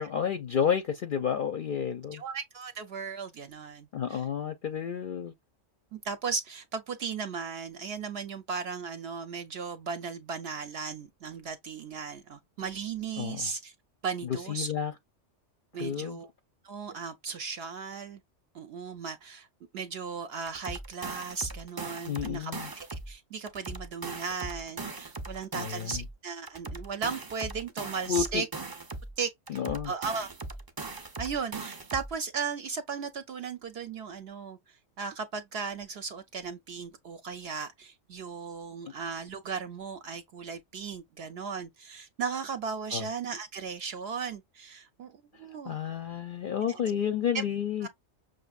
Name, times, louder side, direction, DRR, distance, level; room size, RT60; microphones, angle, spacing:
voice 1, 0.0-2.2 3.9-5.3 13.2-13.5 14.2-14.9 15.8-16.2 22.1-22.7 25.5-26.0 28.1-28.4 29.5-29.9 42.9-43.0 45.7-47.9, left 8 dB, 60° left, 0.6 m, -31 dB
voice 2, 2.1-4.2 5.9-13.7 14.0-14.7 15.7-16.3 16.6-18.2 18.5-19.5 19.7-28.5 29.2-29.3 29.8-30.3 31.2-45.1 45.4-45.8 46.7-46.8 47.3-47.4 47.8-47.9, right 5 dB, 65° right, 0.7 m, -36 dB
sound 1, 20.5-23.1 23.5-26.1 26.5-29.1 29.5-32.1, right 3 dB, 30° right, 0.4 m, -39 dB
6.0 x 2.6 x 2.3 m
omnidirectional pair, 1.3 m